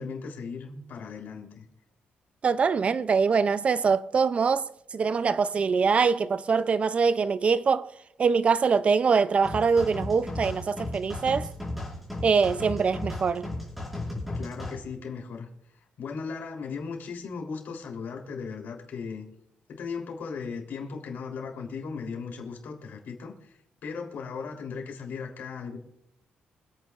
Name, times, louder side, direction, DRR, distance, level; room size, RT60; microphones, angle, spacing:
voice 1, 0.0-1.6 14.3-15.5 16.0-19.3 19.7-25.8, left 5 dB, 70° left, 3.5 m, -37 dB
voice 2, 2.4-4.7 4.9-7.9 8.2-11.5 12.2-13.5, right 5 dB, 35° right, 0.4 m, -23 dB
sound 1, 9.4-14.8, left 1 dB, ahead, 4.9 m, -35 dB
26.5 x 9.2 x 2.5 m
cardioid pair, 130°, 3 cm